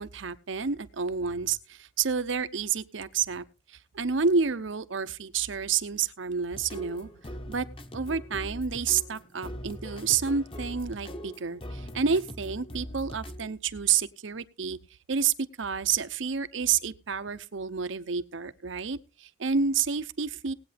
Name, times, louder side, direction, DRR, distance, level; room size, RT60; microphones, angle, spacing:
voice 1, 0.0-7.1 7.5-7.7 7.9-14.8 15.1-20.5, right 6 dB, 75° right, 0.7 m, -29 dB
sound 1, 6.5-13.5, equal, 25° left, 0.9 m, -41 dB
19.0 x 8.7 x 3.4 m
head